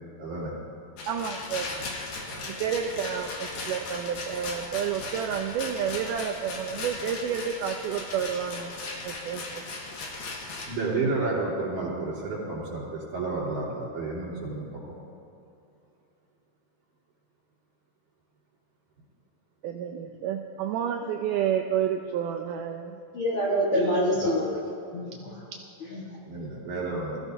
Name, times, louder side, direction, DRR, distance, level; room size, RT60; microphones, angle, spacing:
voice 1, 0.2-0.5 2.3-2.6 10.7-14.8 24.2-24.3 26.2-27.2, right 3 dB, 60° right, -5 dB, 5.5 m, -31 dB
Rattle, 1.0-10.7, left 3 dB, 75° left, 3.4 m, -37 dB
voice 2, 1.1-1.7 2.5-8.7 9.0-9.6 19.6-23.0, right 8 dB, 80° right, 3 dB, 2.0 m, -30 dB
voice 3, 23.1-24.6 24.9-25.3 25.9-26.0, equal, 50° left, -5 dB, 1.8 m, -26 dB
21.0 x 14.5 x 2.7 m, 2.6 s
omnidirectional pair, 4.1 m